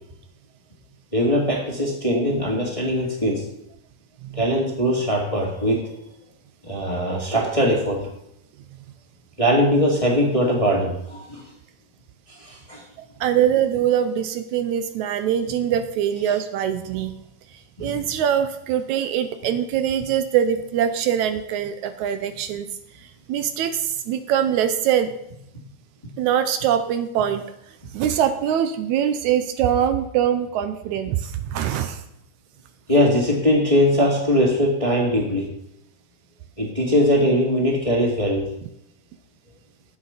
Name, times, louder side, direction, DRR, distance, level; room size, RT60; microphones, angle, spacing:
voice 1, 1.1-3.4 4.3-5.9 6.6-8.1 9.4-11.4 12.4-12.8 17.8-18.0 32.9-35.5 36.6-38.5, equal, 15° left, -2 dB, 1.6 m, -21 dB
voice 2, 13.2-17.1 17.8-22.7 23.3-25.1 26.2-27.4 27.9-32.0, right 9 dB, 80° right, 10 dB, 2.0 m, -23 dB
11.5 x 8.2 x 5.8 m, 0.77 s
omnidirectional pair, 3.5 m